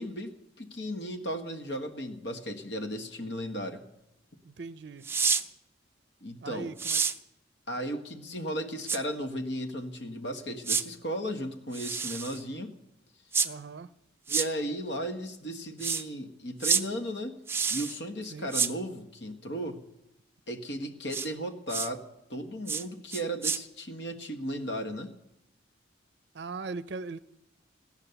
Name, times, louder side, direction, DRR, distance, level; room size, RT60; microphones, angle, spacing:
voice 1, 0.0-3.8 6.2-6.7 7.7-12.7 14.3-17.4 17.7-19.8 20.5-22.0 22.3-25.1, equal, 65° left, 6 dB, 1.4 m, -35 dB
voice 2, 4.4-5.1 6.4-7.0 13.4-13.9 18.3-18.5 26.3-27.2, right 4 dB, 60° right, 16 dB, 0.5 m, -39 dB
sound 1, 5.0-5.4 6.8-7.1 8.9-9.0 10.6-10.8 11.7-12.4 13.3-13.5 14.3-14.5 15.8-16.0 16.6-16.8 17.5-18.0 18.5-18.7 21.1-21.3 21.7-21.9 22.7-22.8 23.1-23.6, right 6 dB, 10° right, 0.4 m, -28 dB
17.0 x 10.5 x 6.9 m, 0.90 s
head